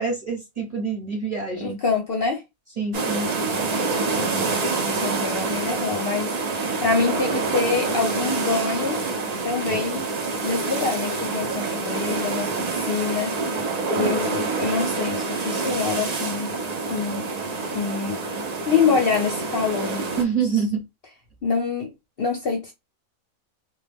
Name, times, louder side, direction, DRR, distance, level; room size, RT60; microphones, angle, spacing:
voice 1, 0.0-1.8 2.8-3.3 20.2-20.8, right 5 dB, 35° right, 0.8 m, -26 dB
voice 2, 1.6-2.4 4.0-6.3 6.8-9.0 9.4-10.0 10.4-13.4 13.9-16.5 16.9-17.3 17.7-18.2 18.7-20.1 21.4-21.9 22.2-22.7, left 5 dB, 55° left, 0.7 m, -26 dB
sound 1, 2.9-20.2, right 3 dB, 70° right, 0.4 m, -27 dB
2.3 x 2.2 x 3.3 m
omnidirectional pair, 1.5 m